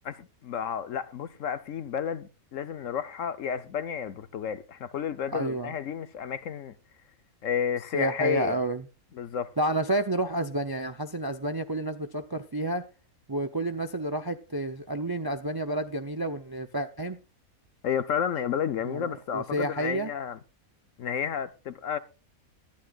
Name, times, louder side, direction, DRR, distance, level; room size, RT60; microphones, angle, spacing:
voice 1, 0.0-6.8 7.4-8.6 9.1-9.5 17.8-20.4 21.0-22.0, left 8 dB, 65° left, 1.1 m, -31 dB
voice 2, 5.3-5.7 7.9-8.8 9.6-12.9 13.3-17.2 18.8-20.1, right 1 dB, 30° right, 0.4 m, -30 dB
20.0 x 12.0 x 2.4 m
omnidirectional pair, 1.5 m